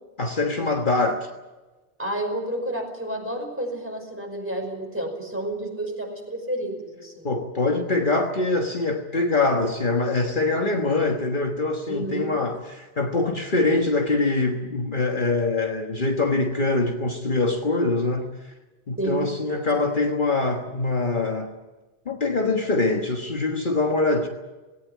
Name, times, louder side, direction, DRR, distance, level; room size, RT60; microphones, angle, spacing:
voice 1, 0.2-1.3 7.2-18.3 18.9-21.5 22.0-24.3, left 3 dB, 45° left, 2 dB, 1.6 m, -24 dB
voice 2, 2.0-7.3 11.9-12.3 19.0-19.3, right 1 dB, 10° right, 2 dB, 5.3 m, -30 dB
19.0 x 18.0 x 9.4 m, 1.2 s
omnidirectional pair, 1.1 m